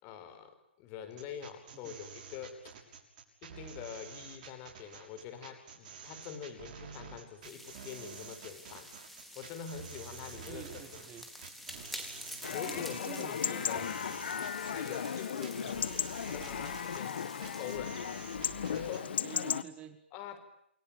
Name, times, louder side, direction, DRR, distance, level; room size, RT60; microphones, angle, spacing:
voice 1, 0.0-2.7 3.4-8.9 9.3-10.8 12.5-14.0 14.7-18.0 18.7-19.2 20.1-20.4, left 8 dB, 30° left, 10 dB, 4.9 m, -45 dB
sound 1, 1.1-19.1, right 6 dB, 45° right, 6.6 m, -49 dB
sound 2, 7.4-17.8, equal, ahead, 4.2 m, -49 dB
voice 2, 10.5-11.3 12.6-13.9 15.6-15.9 19.2-20.0, right 10 dB, 20° right, 10 dB, 1.9 m, -48 dB
Chatter / Livestock farm animals working animals / Chirp tweet, 12.4-19.6, left 8 dB, 65° left, 1.7 m, -36 dB
29.5 x 22.0 x 9.0 m, 0.74 s
hypercardioid pair, 145°, 6 cm